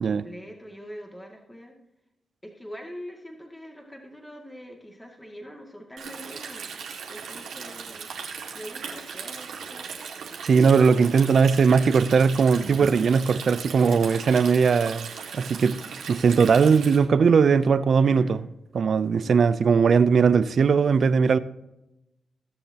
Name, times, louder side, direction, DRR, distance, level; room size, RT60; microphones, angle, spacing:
voice 1, 0.0-1.8 2.4-6.7 7.1-8.1 8.5-9.8 18.0-18.4, equal, 10° left, 2.4 m, -43 dB
Stream, 6.0-17.0, right 6 dB, 85° right, 2.1 m, -38 dB
voice 2, 10.4-15.1 15.3-15.8 16.1-18.4 18.7-21.4, right 5 dB, 65° right, 0.6 m, -19 dB
21.0 x 7.1 x 2.9 m
supercardioid pair, 50°, 0 cm